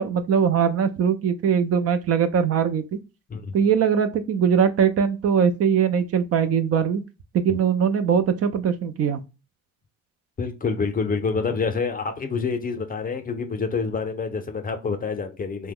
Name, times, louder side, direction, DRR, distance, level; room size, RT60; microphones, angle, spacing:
voice 1, 0.0-3.0 3.5-7.0 7.3-9.2, right 7 dB, 55° right, 0.4 m, -21 dB
voice 2, 10.4-15.7, left 5 dB, 30° left, 0.5 m, -27 dB
2.8 x 2.1 x 3.6 m
cardioid pair, 90°, 30 cm